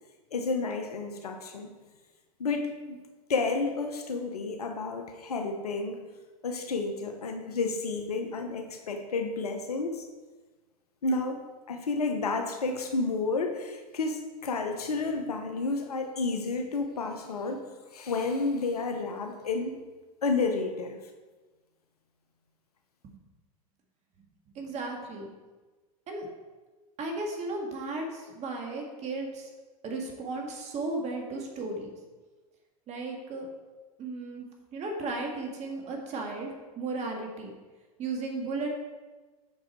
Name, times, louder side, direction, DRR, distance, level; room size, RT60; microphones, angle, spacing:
voice 1, 0.3-1.7 2.4-3.0 3.3-6.1 6.4-10.0 11.0-17.6 17.9-19.8 20.2-21.0, left 3 dB, 90° left, 5 dB, 0.9 m, -31 dB
voice 2, 24.6-25.3 26.1-26.3 27.0-29.5 29.8-31.9 32.9-33.5 34.0-34.5 34.7-37.5 38.0-38.7, right 3 dB, 35° right, 1 dB, 2.0 m, -35 dB
7.8 x 6.3 x 4.6 m, 1.3 s
hypercardioid pair, 100°, 19 cm